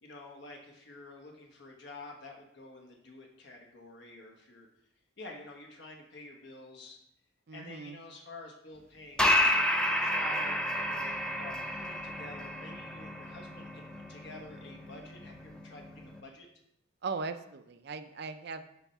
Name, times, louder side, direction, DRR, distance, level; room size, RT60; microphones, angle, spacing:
voice 1, 0.0-4.7 5.2-7.0 7.5-16.5, left 2 dB, 60° left, 1 dB, 1.2 m, -49 dB
voice 2, 7.5-8.0 17.0-18.7, right 4 dB, 55° right, 10 dB, 0.5 m, -39 dB
sound 1, 9.2-16.2, left 1 dB, 5° left, 0.6 m, -31 dB
7.1 x 4.4 x 5.6 m, 0.77 s
head